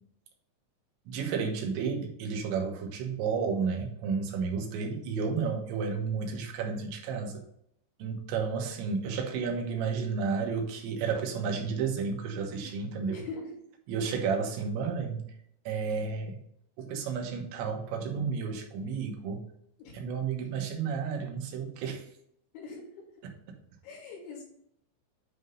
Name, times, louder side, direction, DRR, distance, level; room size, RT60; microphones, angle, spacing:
voice 1, 1.1-7.5 8.0-13.3 13.9-15.3 15.7-16.4 16.8-19.4 19.9-22.1 23.2-23.3, right 5 dB, 70° right, 2 dB, 3.2 m, -32 dB
voice 2, 12.6-13.5 19.8-19.9 22.5-22.8 23.8-24.4, left 4 dB, 65° left, -4 dB, 4.6 m, -43 dB
9.6 x 3.6 x 5.3 m, 0.71 s
omnidirectional pair, 5.9 m